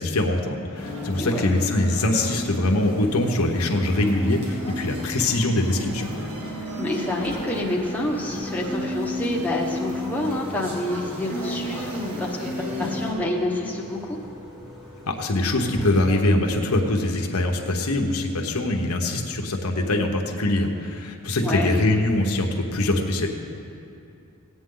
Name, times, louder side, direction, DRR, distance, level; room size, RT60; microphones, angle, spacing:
voice 1, 0.0-6.1 15.1-23.3, left 1 dB, 85° left, 2 dB, 1.0 m, -23 dB
sound 1, 0.7-13.1, left 1 dB, 90° right, 2.0 m, -33 dB
voice 2, 1.2-1.5 6.7-14.2 21.4-21.7, left 1 dB, 5° left, -3 dB, 1.0 m, -28 dB
Engine, 7.0-18.0, left 1 dB, 20° right, 1.7 m, -45 dB
16.0 x 8.9 x 3.8 m, 2.6 s
head